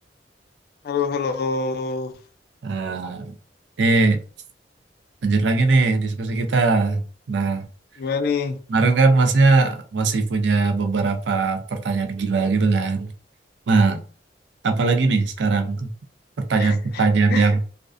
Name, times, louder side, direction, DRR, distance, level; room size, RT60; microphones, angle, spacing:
voice 1, 0.8-2.1 8.0-8.6 16.6-17.0 17.3-17.5, left 5 dB, 60° left, 0.4 m, -26 dB
voice 2, 2.6-3.3 3.8-4.2 5.2-7.7 8.7-13.1 13.7-14.0 14.6-15.9 16.4-17.6, right 3 dB, 80° right, 0.4 m, -20 dB
2.4 x 2.1 x 2.4 m
head